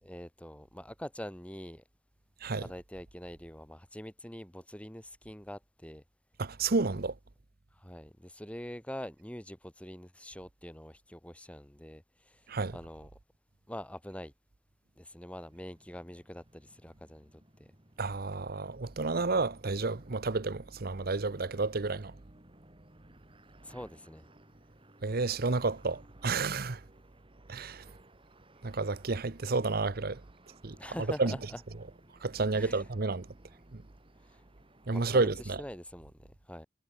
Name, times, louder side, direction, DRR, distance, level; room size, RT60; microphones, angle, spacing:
voice 1, 0.0-1.8 2.6-6.0 7.8-12.0 12.7-13.1 13.7-14.3 15.0-17.3 23.6-24.3 30.7-31.6 32.5-32.8 34.9-35.3 35.6-36.7, equal, 5° left, 3.6 m, -44 dB
voice 2, 6.4-7.1 12.5-12.8 18.0-22.1 25.0-26.8 27.5-27.9 28.6-30.2 30.6-31.4 32.2-33.3 33.7-33.8 34.9-35.6, right 3 dB, 55° right, 0.9 m, -31 dB
sound 1, 15.4-35.1, right 1 dB, 30° right, 5.8 m, -60 dB
head